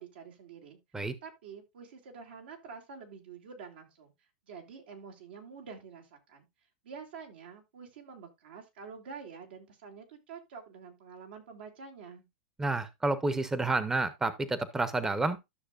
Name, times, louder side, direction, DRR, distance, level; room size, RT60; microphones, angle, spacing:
voice 1, 0.0-0.8 1.2-4.1 4.5-6.5 6.8-12.2, right 5 dB, 80° right, 2.8 m, -47 dB
voice 2, 12.6-15.5, right 2 dB, 10° right, 0.8 m, -30 dB
12.5 x 6.3 x 2.5 m
hypercardioid pair, 120°, 5 cm